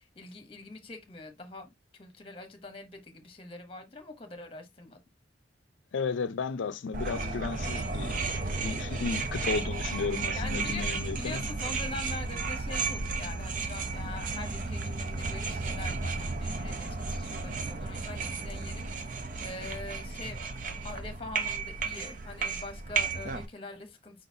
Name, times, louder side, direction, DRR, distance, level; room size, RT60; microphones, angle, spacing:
voice 1, 0.0-5.0 8.9-9.3 10.3-24.2, left 2 dB, 30° left, 1.0 m, -44 dB
voice 2, 5.9-8.2 8.6-11.4, left 5 dB, 80° left, 0.4 m, -33 dB
sound 1, 6.9-23.5, right 4 dB, 45° right, 0.6 m, -33 dB
4.8 x 3.9 x 2.7 m
head